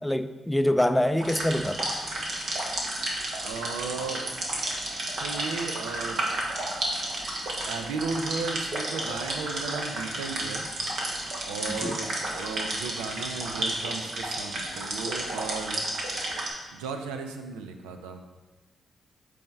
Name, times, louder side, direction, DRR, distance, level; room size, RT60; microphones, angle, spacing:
voice 1, 0.0-1.9 11.7-12.0, left 1 dB, 10° left, 10 dB, 0.4 m, -25 dB
sound 1, 1.2-16.5, right 1 dB, 65° right, 1.2 m, -32 dB
voice 2, 3.4-4.3 5.2-6.3 7.6-10.7 11.5-15.8 16.7-18.2, right 4 dB, 85° right, 6 dB, 0.4 m, -35 dB
8.3 x 3.4 x 3.4 m, 1.2 s
hypercardioid pair, 40°, 0 cm